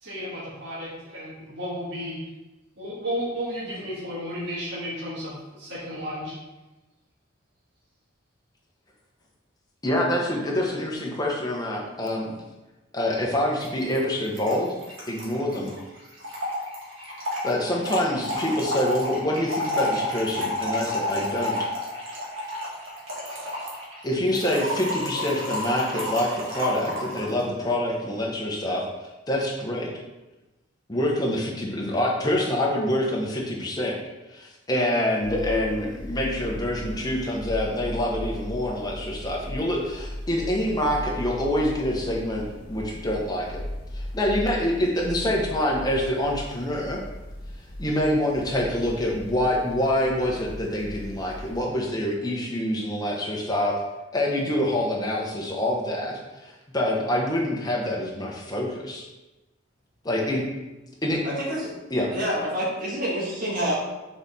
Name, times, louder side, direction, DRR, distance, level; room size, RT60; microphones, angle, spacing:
voice 1, 0.0-2.2 2.8-6.3, equal, 60° right, -8 dB, 1.7 m, -33 dB
voice 2, 9.8-12.3 12.9-14.7 15.1-15.7 17.4-21.7 24.0-28.8 29.3-29.9 30.9-34.0 34.3-43.6 43.9-47.0 47.8-53.8 54.1-59.0 60.0-60.4 61.0-61.2 61.9-62.1, left 1 dB, 20° left, -1 dB, 1.0 m, -26 dB
Trickle dribble / Fill (with liquid), 13.6-13.7 13.9-14.0 14.2-27.3, left 1 dB, 80° right, 1.6 m, -31 dB
sound 1, 35.2-51.7, left 1 dB, 55° left, 1.6 m, -37 dB
voice 3, 61.2-61.7 62.1-63.7, equal, 45° right, -5 dB, 1.4 m, -27 dB
5.6 x 4.2 x 4.1 m, 1.1 s
head